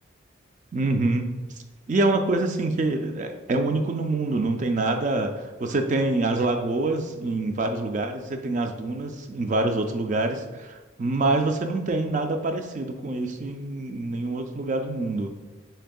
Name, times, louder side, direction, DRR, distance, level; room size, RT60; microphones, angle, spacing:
voice 1, 0.7-1.3 1.9-5.3 5.6-15.3, right 2 dB, 40° right, 6 dB, 0.3 m, -26 dB
6.4 x 3.4 x 2.3 m, 1.2 s
head